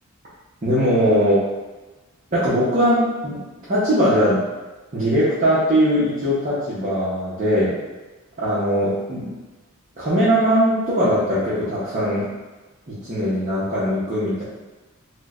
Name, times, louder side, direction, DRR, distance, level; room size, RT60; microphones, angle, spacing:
voice 1, 0.6-1.5 2.3-3.4 3.7-4.4 4.9-7.7 8.4-9.3 10.0-12.3 12.9-14.4, equal, 35° right, -10 dB, 0.7 m, -20 dB
4.4 x 2.2 x 2.4 m, 1.2 s
head